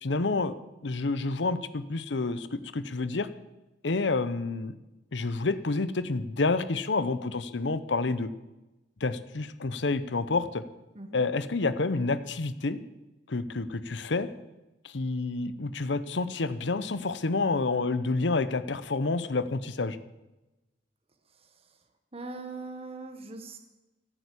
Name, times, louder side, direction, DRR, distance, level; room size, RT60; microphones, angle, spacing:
voice 1, 0.0-0.5 0.8-3.3 3.8-4.8 5.1-8.3 9.0-10.6 11.1-12.8 13.3-14.3 14.8-20.0, left 3 dB, 70° left, 14 dB, 0.8 m, -29 dB
voice 2, 21.3-21.8 22.1-23.6, right 3 dB, 35° right, 6 dB, 1.3 m, -41 dB
15.5 x 9.0 x 8.4 m, 1.0 s
head